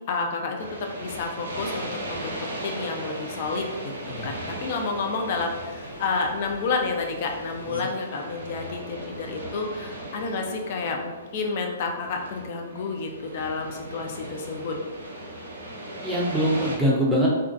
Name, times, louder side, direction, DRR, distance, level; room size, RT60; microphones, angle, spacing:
voice 1, 0.1-0.6 1.0-4.3 4.6-14.8, left 4 dB, 50° left, 2 dB, 0.4 m, -30 dB
sound 1, 0.6-16.8, right 1 dB, 80° right, 0.6 m, -38 dB
sound 2, 1.0-10.1, left 1 dB, 70° left, 0.9 m, -47 dB
voice 2, 16.0-17.3, equal, 5° right, -6 dB, 0.5 m, -23 dB
2.3 x 2.2 x 2.5 m, 1.2 s
figure-of-eight pair, 120°, 0 cm